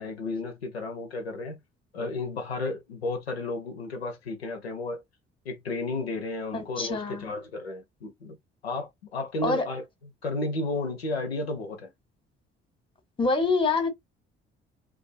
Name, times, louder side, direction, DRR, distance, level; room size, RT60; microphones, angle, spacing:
voice 1, 0.0-1.6 1.9-5.0 5.5-8.4 8.6-9.8 10.2-11.9, left 2 dB, 85° left, 0.5 m, -33 dB
voice 2, 6.5-7.3 9.4-9.7 13.2-13.9, left 3 dB, 15° left, 0.8 m, -26 dB
2.3 x 2.3 x 2.3 m
figure-of-eight pair, 45°, 30 cm